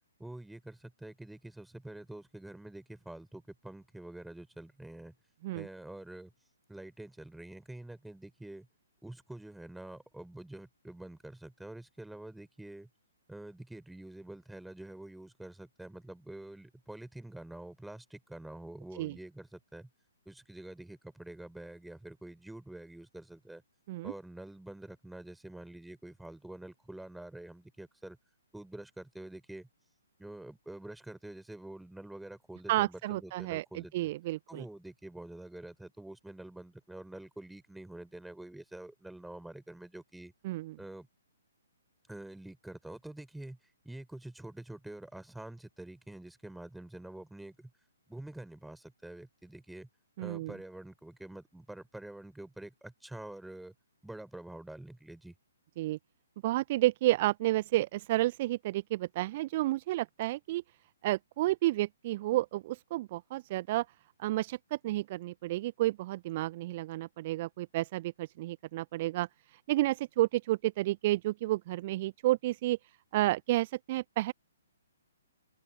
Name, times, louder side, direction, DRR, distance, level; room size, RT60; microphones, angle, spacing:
voice 1, 0.2-5.1 5.5-6.3 6.7-8.7 9.0-12.9 13.3-19.9 20.3-23.6 24.0-28.2 28.5-29.7 30.2-34.1 34.5-40.3 40.8-41.1 42.1-43.6 43.8-47.7 48.1-49.9 50.2-53.7 54.0-55.3, right 1 dB, ahead, 3.9 m, -47 dB
voice 2, 32.7-34.6 40.4-40.7 50.2-50.5 55.8-56.0 56.4-60.6 61.0-63.9 64.2-69.3 69.7-72.8 73.1-74.3, right 17 dB, 35° right, 0.9 m, -31 dB
open air
figure-of-eight pair, 125°, 0 cm